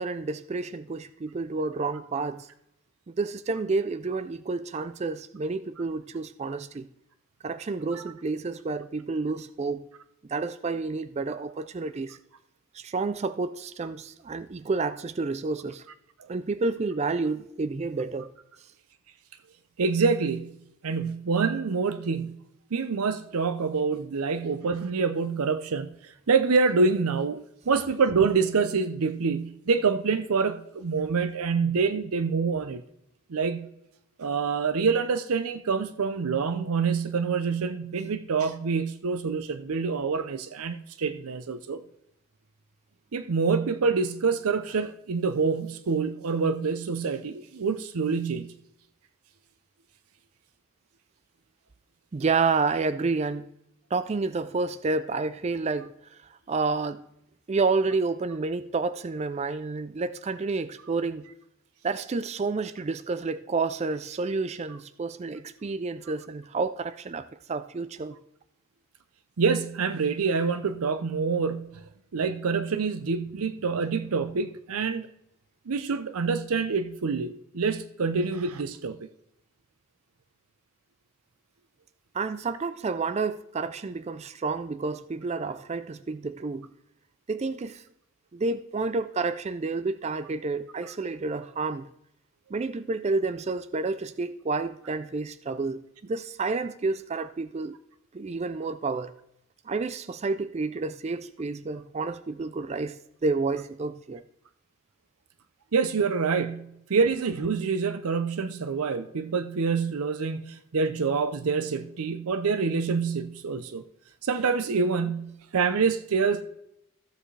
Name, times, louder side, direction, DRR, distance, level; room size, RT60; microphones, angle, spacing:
voice 1, 0.0-2.5 3.1-6.9 7.4-9.9 10.3-12.2 12.7-15.8 16.3-18.3 52.1-53.5 53.9-57.0 57.5-61.3 61.8-68.2 82.1-86.7 87.3-87.8 88.3-91.9 92.5-97.8 98.1-99.1 99.7-104.2, right 3 dB, 30° right, 0.3 m, -30 dB
voice 2, 19.8-20.6 20.8-22.4 22.7-32.8 33.3-33.7 34.2-41.8 43.1-48.5 69.4-71.8 72.1-75.1 75.7-79.1 105.7-113.8 114.2-116.4, right 5 dB, 75° right, 0.6 m, -26 dB
14.5 x 7.6 x 3.3 m
head